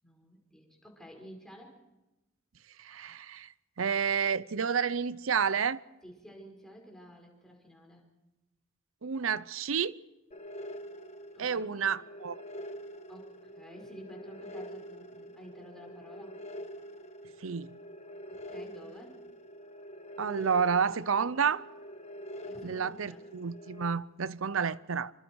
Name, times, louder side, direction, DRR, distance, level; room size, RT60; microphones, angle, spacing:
voice 1, 0.0-1.8 6.0-8.0 11.3-11.7 13.1-16.4 18.3-19.2 22.4-23.2, equal, 5° left, 5.5 m, -51 dB
voice 2, 2.8-3.5 3.8-5.8 9.0-10.0 11.4-12.4 17.4-17.8 20.2-21.6 22.6-25.1, right 6 dB, 75° right, 0.7 m, -30 dB
sound 1, 10.3-23.9, equal, 35° left, 1.3 m, -45 dB
27.5 x 25.5 x 4.8 m
head